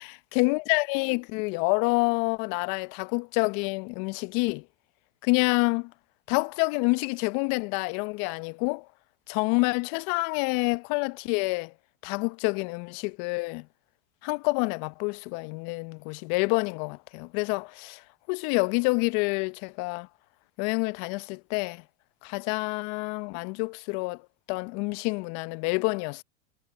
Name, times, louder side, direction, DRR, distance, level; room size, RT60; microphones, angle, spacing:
voice 1, 0.0-4.6 5.2-5.9 6.3-8.9 9.3-11.7 12.0-13.7 14.2-20.1 20.6-21.8 22.2-24.2 24.5-26.2, left 29 dB, 50° left, 0.8 m, -28 dB
hypercardioid pair, 100°, 41 cm